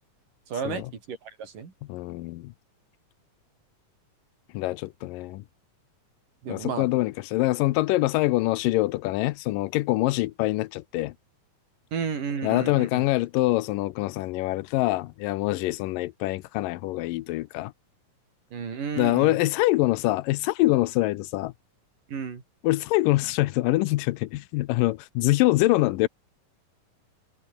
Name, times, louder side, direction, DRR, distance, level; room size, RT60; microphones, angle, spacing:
voice 1, 0.5-1.7 6.4-6.9 11.9-13.0 18.5-19.4 22.1-22.4, right 6 dB, 70° right, 5.6 m, -32 dB
voice 2, 1.9-2.5 4.5-5.4 6.5-11.1 12.4-17.7 19.0-21.5 22.6-26.1, left 18 dB, 80° left, 2.3 m, -24 dB
omnidirectional pair, 3.9 m